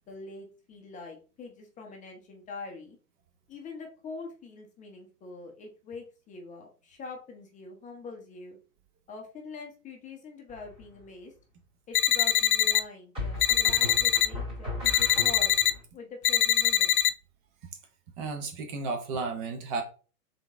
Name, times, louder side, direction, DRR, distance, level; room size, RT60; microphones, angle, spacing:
voice 1, 0.1-3.0 3.5-8.6 9.1-11.3 11.9-15.5 15.9-17.0, left 4 dB, 15° left, 2 dB, 0.8 m, -44 dB
sound 1, 10.5-11.0 13.1-15.8, left 2 dB, 10° right, 2.3 m, -37 dB
sound 2, 11.9-12.8 13.4-14.3 14.8-15.7 16.2-17.1, left 11 dB, 65° left, 0.5 m, -23 dB
voice 2, 18.2-19.8, right 4 dB, 35° right, 5 dB, 0.8 m, -33 dB
3.8 x 3.8 x 3.4 m, 0.36 s
hypercardioid pair, 120°, 46 cm